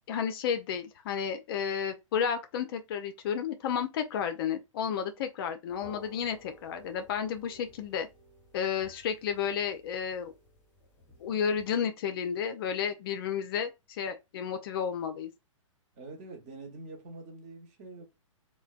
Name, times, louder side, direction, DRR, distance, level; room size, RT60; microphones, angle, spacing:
voice 1, 0.1-8.1 8.5-10.3 11.2-15.3, left 7 dB, 45° left, 0.4 m, -32 dB
sound 1, 5.7-11.7, left 1 dB, 15° left, 0.8 m, -55 dB
voice 2, 15.9-18.0, right 2 dB, 35° right, 1.0 m, -45 dB
3.2 x 2.2 x 2.3 m
figure-of-eight pair, 115°, 17 cm